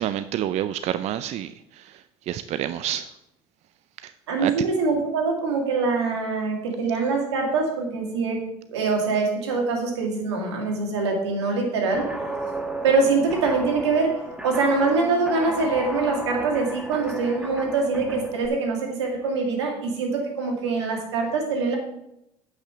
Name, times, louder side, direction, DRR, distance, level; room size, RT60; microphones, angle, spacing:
voice 1, 0.0-1.9 2.3-3.1 4.0-4.1 4.4-4.5, right 11 dB, 55° right, 13 dB, 0.4 m, -28 dB
voice 2, 4.3-8.4 8.7-12.1 12.8-21.8, right 4 dB, 90° right, 1 dB, 2.1 m, -24 dB
Guitar, 11.9-18.5, right 1 dB, 5° right, 1.4 m, -34 dB
8.5 x 5.8 x 5.8 m, 0.85 s
hypercardioid pair, 70°, 14 cm